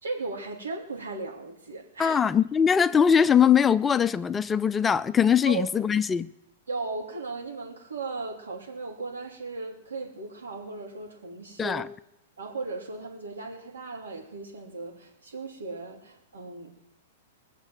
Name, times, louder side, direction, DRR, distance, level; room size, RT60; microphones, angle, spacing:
voice 1, 0.0-2.2 5.5-5.7 6.7-11.8 12.4-16.8, right 3 dB, 90° right, 3.1 m, -36 dB
voice 2, 2.0-6.3 11.6-11.9, left 7 dB, 20° left, 0.4 m, -21 dB
20.0 x 7.4 x 7.5 m
hypercardioid pair, 115°, 0 cm